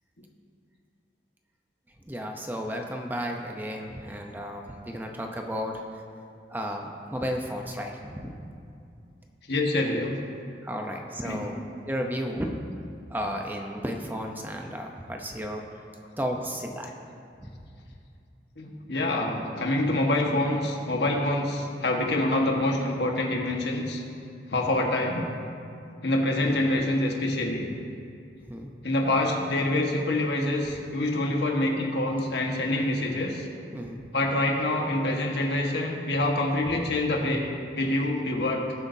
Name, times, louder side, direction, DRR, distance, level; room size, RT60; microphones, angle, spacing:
voice 1, 2.1-5.8 6.5-8.6 10.6-11.5 11.9-12.6 13.1-15.6 16.2-16.9 17.4-17.6 26.4-26.6 28.5-28.7 33.7-34.0 36.7-36.8, equal, 10° right, 2 dB, 0.7 m, -33 dB
voice 2, 9.5-10.2 11.2-11.4 18.6-24.0 24.5-25.2 26.0-27.7 28.8-33.5 34.1-37.5 37.7-38.6, left 1 dB, 70° left, 0 dB, 1.5 m, -26 dB
20.0 x 7.9 x 2.7 m, 2.5 s
head